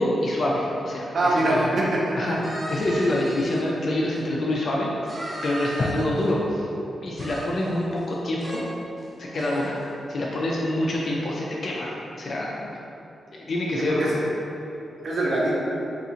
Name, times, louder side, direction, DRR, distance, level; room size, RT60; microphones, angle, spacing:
voice 1, 0.0-1.4 2.2-2.4 2.7-4.9 5.4-6.7 7.0-8.6 9.2-9.7 10.1-12.6 13.3-14.2, left 1 dB, 45° left, -3 dB, 0.3 m, -26 dB
voice 2, 1.1-2.4 13.8-14.1 15.0-15.6, right 1 dB, 55° right, -5 dB, 0.6 m, -23 dB
sound 1, 2.4-3.6 4.1-4.2 5.1-6.3 7.2-8.1 8.4-8.6 9.0-9.1 9.4-9.8, equal, 15° right, 0.6 m, -37 dB
3.7 x 2.4 x 2.8 m, 2.9 s
wide cardioid pair, 160°, 0 cm